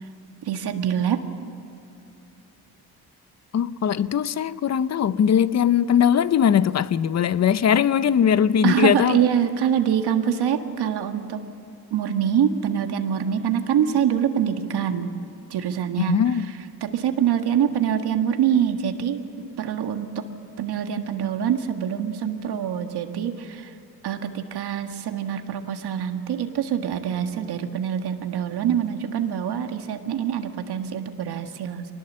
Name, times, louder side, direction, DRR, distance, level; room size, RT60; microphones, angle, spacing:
voice 1, 0.4-1.2 8.6-11.4 11.9-15.1 15.5-16.4 16.8-20.1 20.6-23.7 24.0-31.9, right 9 dB, 80° right, 1.7 m, -25 dB
voice 2, 3.5-9.2 16.1-16.5, left 8 dB, 45° left, 0.6 m, -20 dB
24.0 x 19.0 x 7.5 m
cardioid pair, 110°, 39 cm